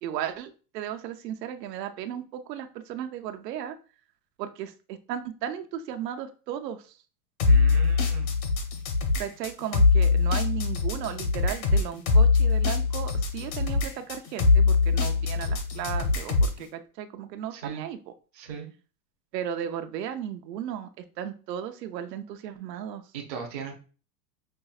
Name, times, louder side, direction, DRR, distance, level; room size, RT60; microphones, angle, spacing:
voice 1, 0.0-3.8 4.4-7.0 9.2-18.0 19.3-23.1, right 10 dB, 85° right, 7 dB, 0.7 m, -35 dB
sound 1, 7.4-16.6, left 4 dB, 65° left, 0.9 m, -22 dB
voice 2, 7.5-8.3 17.5-17.8 18.3-18.7 23.1-23.7, right 6 dB, 25° right, -1 dB, 0.4 m, -38 dB
5.3 x 2.1 x 2.3 m, 0.36 s
supercardioid pair, 175°, 48 cm